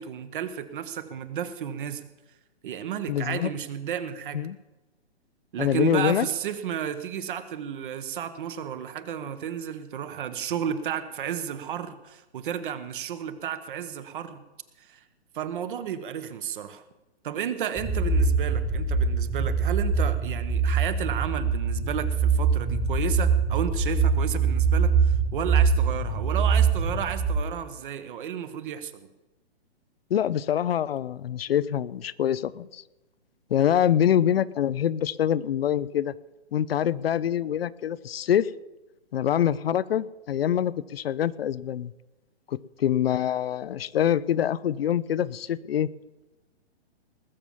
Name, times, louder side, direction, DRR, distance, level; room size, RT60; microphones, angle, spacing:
voice 1, 0.0-2.0 2.6-4.4 5.5-14.4 14.8-15.0 15.3-16.8 17.2-29.1, right 9 dB, 50° right, 12 dB, 1.3 m, -32 dB
voice 2, 3.1-3.5 4.3-4.6 5.6-6.3 30.1-32.8 33.5-36.1 36.5-38.5 39.1-41.9 42.5-45.9, left 10 dB, 60° left, 19 dB, 0.6 m, -25 dB
sound 1, 17.8-27.4, right 5 dB, 10° right, 1.3 m, -23 dB
19.5 x 7.2 x 7.3 m, 1.1 s
hypercardioid pair, 135°, 33 cm